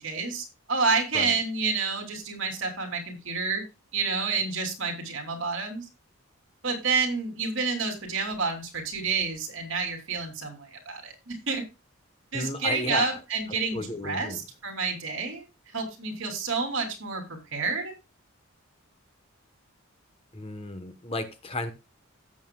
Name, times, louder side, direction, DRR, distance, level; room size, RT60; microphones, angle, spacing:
voice 1, 0.0-3.6 3.9-5.9 6.6-11.6 12.3-15.5 15.7-17.9, right 4 dB, 60° right, 3 dB, 2.9 m, -29 dB
voice 2, 12.3-13.2 13.7-14.4 20.3-21.7, left 2 dB, 25° left, 8 dB, 1.0 m, -33 dB
17.0 x 7.2 x 2.3 m, 0.27 s
head